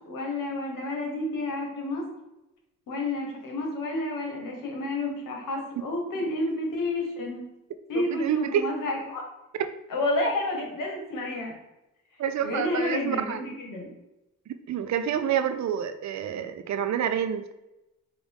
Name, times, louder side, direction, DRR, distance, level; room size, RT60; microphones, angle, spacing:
voice 1, 0.0-2.1 2.9-7.4 7.9-9.2 9.9-11.5 12.4-13.9, left 2 dB, 80° left, 0 dB, 1.3 m, -30 dB
voice 2, 8.1-8.7 9.5-9.7 12.2-13.6 14.7-17.5, right 9 dB, 60° right, 9 dB, 0.5 m, -28 dB
5.1 x 2.5 x 3.5 m, 0.95 s
cardioid pair, 65°, 32 cm